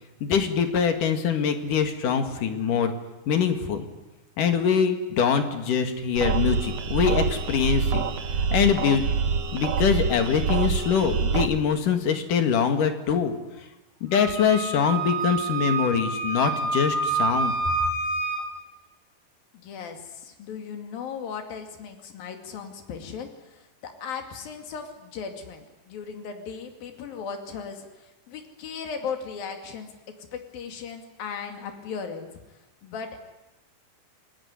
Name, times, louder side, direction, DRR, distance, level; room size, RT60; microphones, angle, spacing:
voice 1, 0.2-2.9 3.3-3.8 4.4-8.0 8.5-9.0 9.5-13.4 14.0-17.5, left 7 dB, 70° left, 7 dB, 3.5 m, -23 dB
sound 1, 6.2-11.5, right 5 dB, 55° right, 2.3 m, -26 dB
Wind instrument woodwind instrument, 14.1-18.4, right 3 dB, 85° right, 6.2 m, -27 dB
voice 2, 19.5-32.3 32.8-33.2, left 6 dB, 85° left, 5 dB, 4.2 m, -37 dB
28.5 x 21.0 x 9.8 m, 1.0 s
omnidirectional pair, 4.0 m